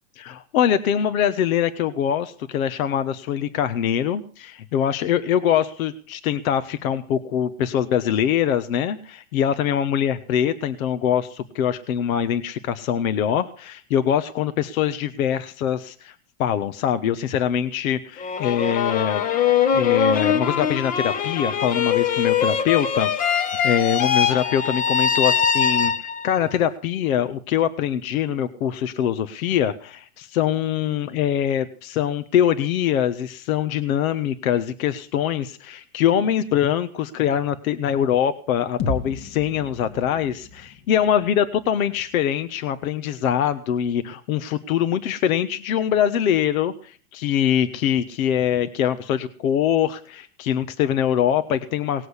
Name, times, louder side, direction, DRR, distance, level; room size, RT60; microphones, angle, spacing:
voice 1, 0.2-19.2 19.7-52.1, left 9 dB, 75° left, 11 dB, 1.3 m, -23 dB
sound 1, 18.2-26.4, left 7 dB, 20° left, 0.8 m, -22 dB
sound 2, 38.8-42.8, left 3 dB, 40° left, 1.8 m, -34 dB
19.0 x 7.8 x 8.2 m, 0.42 s
supercardioid pair, 155°, 43 cm